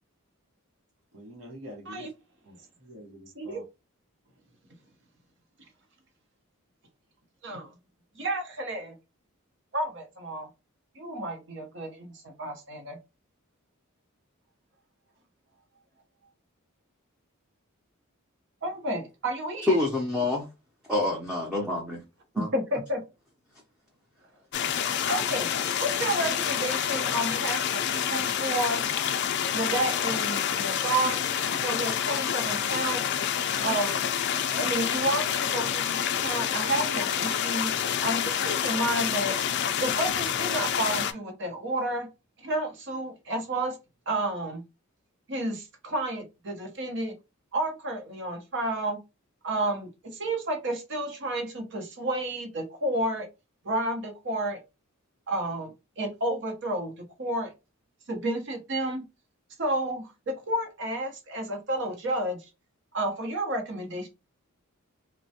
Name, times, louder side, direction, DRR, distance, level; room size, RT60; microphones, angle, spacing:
voice 1, 1.1-2.1 2.4-3.6, equal, 85° right, 0.9 m, -46 dB
voice 2, 8.2-9.0 9.7-10.5 11.0-13.0 18.6-19.8 22.4-23.0 25.1-25.5 25.8-28.8 29.5-31.3 31.6-33.0 33.6-33.9 34.5-37.7 38.0-39.4 39.8-42.1 42.4-43.8 44.1-44.6 45.3-47.1 47.5-49.0 49.4-53.3 53.6-54.6 55.3-56.9 57.2-57.5 58.1-59.0 59.6-62.4 62.9-64.1, right 1 dB, 55° right, 0.8 m, -31 dB
voice 3, 19.7-20.5 20.9-22.0 22.3-22.5, left 2 dB, 5° right, 0.5 m, -26 dB
sound 1, 24.5-41.1, left 9 dB, 50° left, 0.3 m, -28 dB
3.2 x 2.2 x 2.7 m
head